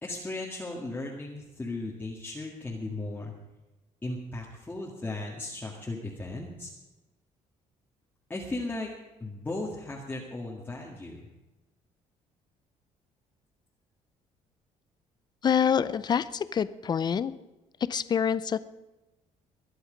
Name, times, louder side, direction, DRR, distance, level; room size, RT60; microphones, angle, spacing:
voice 1, 0.0-3.3 4.0-6.7 8.3-8.9 9.2-11.2, left 2 dB, 15° left, -3 dB, 2.0 m, -36 dB
voice 2, 15.4-17.3 17.9-18.6, left 7 dB, 30° left, 16 dB, 0.6 m, -26 dB
22.0 x 10.0 x 5.2 m, 1.1 s
cardioid pair, 135°, 13 cm